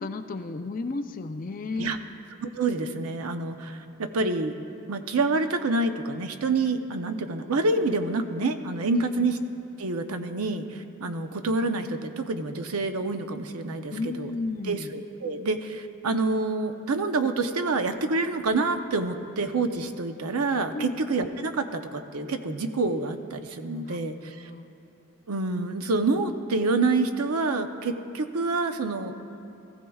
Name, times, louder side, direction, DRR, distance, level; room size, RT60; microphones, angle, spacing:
voice 1, 0.0-2.0 9.0-9.3 13.9-14.9 20.7-21.0 23.9-24.0 24.3-24.7, left 3 dB, 40° left, 8 dB, 0.5 m, -33 dB
voice 2, 2.4-4.5 4.9-9.4 9.8-14.3 14.7-24.5 25.3-29.1, right 3 dB, 90° right, 7 dB, 0.7 m, -27 dB
19.0 x 15.0 x 2.3 m, 2.7 s
head